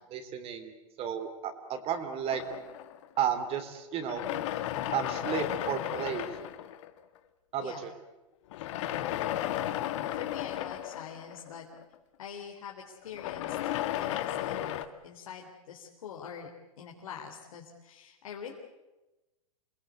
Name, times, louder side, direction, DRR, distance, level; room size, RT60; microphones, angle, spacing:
voice 1, 0.1-2.4 3.2-4.2 4.9-6.3 7.5-7.9, right 8 dB, 35° right, 8 dB, 3.2 m, -33 dB
sound 1, 2.3-3.5 4.0-7.2 8.5-11.9 13.0-14.9, left 12 dB, 60° left, 1.8 m, -34 dB
voice 2, 9.3-9.9 10.1-11.7 12.2-13.6 13.9-16.5 16.8-18.5, left 7 dB, 75° left, 0 dB, 3.7 m, -44 dB
28.0 x 19.0 x 8.3 m, 1.0 s
hypercardioid pair, 125°, 18 cm